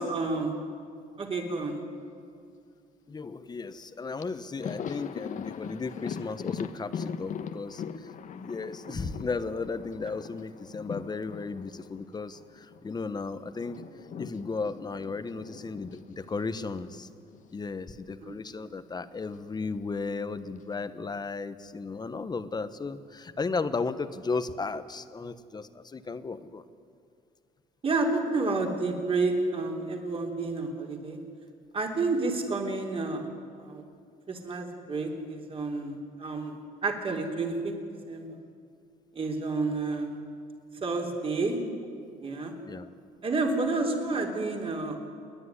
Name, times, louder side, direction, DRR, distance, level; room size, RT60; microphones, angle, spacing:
voice 1, 0.1-0.6 1.2-1.8 8.9-9.0 18.2-18.4 27.8-31.2 31.7-33.3 33.6-33.8 34.3-37.7 38.1-38.3 39.1-40.2 40.8-41.6 42.2-42.6 43.2-45.0, right 3 dB, 35° right, 1 dB, 3.5 m, -30 dB
voice 2, 3.1-13.8 14.2-17.1 17.5-26.6 42.7-42.9, left 4 dB, 25° left, 12 dB, 1.1 m, -35 dB
Thunder, 3.8-3.9 4.2-13.0 13.3-17.6 17.8-18.0 19.2-19.9, left 7 dB, 50° left, 1.2 m, -41 dB
29.5 x 10.5 x 10.0 m, 2.3 s
cardioid pair, 110°, 17 cm